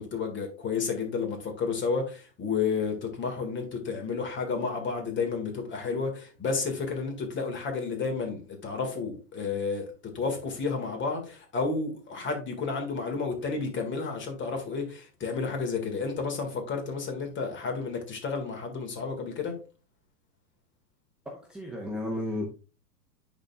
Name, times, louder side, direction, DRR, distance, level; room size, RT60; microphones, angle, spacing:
voice 1, 0.0-19.6, left 4 dB, 25° left, 1.8 m, -31 dB
voice 2, 21.2-22.5, left 1 dB, ahead, 0.8 m, -33 dB
10.5 x 4.2 x 2.3 m
hypercardioid pair, 105°, 48 cm